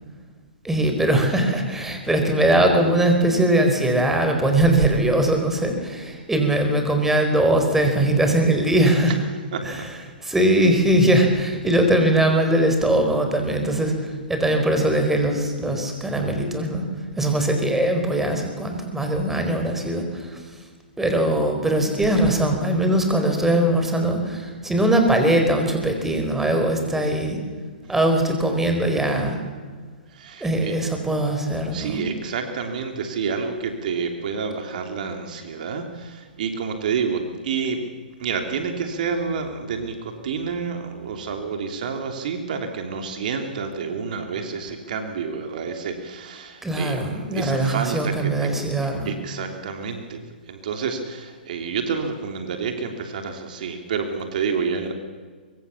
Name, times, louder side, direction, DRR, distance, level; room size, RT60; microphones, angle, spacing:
voice 1, 0.6-9.1 9.6-9.9 10.2-16.9 17.2-20.6 21.0-27.4 27.9-29.4 30.4-32.0 46.6-49.1, right 1 dB, 5° right, 4 dB, 4.7 m, -21 dB
voice 2, 9.5-9.9 30.1-30.7 31.7-37.8 38.2-48.5 49.0-50.2 50.5-54.9, right 5 dB, 55° right, 5 dB, 3.2 m, -29 dB
24.0 x 24.0 x 7.1 m, 1.5 s
hypercardioid pair, 125°, 5 cm